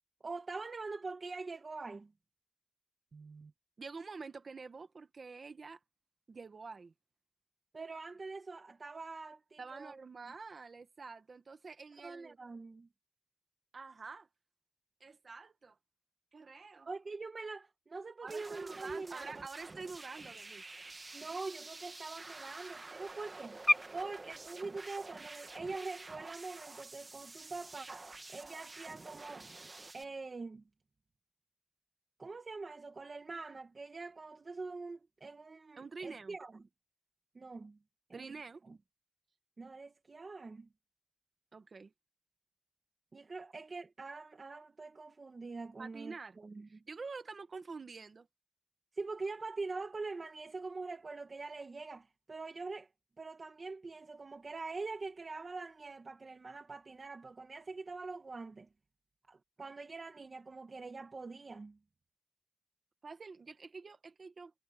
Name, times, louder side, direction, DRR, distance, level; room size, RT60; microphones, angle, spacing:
voice 1, 0.2-2.1 7.7-10.0 10.3-10.4 12.0-12.9 16.9-19.5 21.1-23.6 23.9-29.5 29.9-30.6 32.2-36.6 37.3-37.8 38.1-38.3 38.6-38.8 39.6-40.7 43.1-46.7 49.0-52.9 53.2-58.7 59.3-61.8, right 3 dB, 65° right, 1.5 m, -44 dB
voice 2, 3.1-3.5 3.8-5.8 6.3-6.9 9.6-12.4 13.7-14.3 15.0-15.8 16.3-16.9 18.2-20.6 35.8-36.4 38.1-38.6 41.5-41.9 45.8-46.4 46.7-48.3 63.0-64.5, right 4 dB, 90° right, 1.4 m, -47 dB
sound 1, 18.3-30.0, right 3 dB, 50° right, 1.4 m, -50 dB
sound 2, 23.5-29.6, left 1 dB, 15° left, 0.8 m, -40 dB
wide cardioid pair, 90°, 0 cm